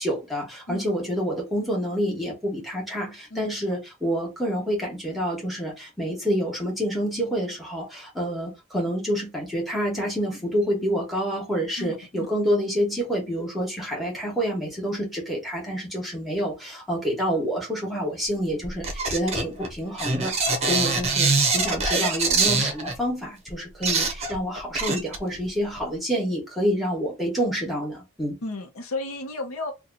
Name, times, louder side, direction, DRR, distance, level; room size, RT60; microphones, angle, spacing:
voice 1, 0.0-28.4, equal, ahead, 1.2 m, -28 dB
voice 2, 11.8-12.3 28.4-29.7, left 2 dB, 75° left, 0.7 m, -33 dB
sound 1, 18.6-22.9 23.5-23.6 23.8-25.5 25.8-25.9, right 4 dB, 30° right, 0.7 m, -24 dB
2.9 x 2.3 x 3.8 m
head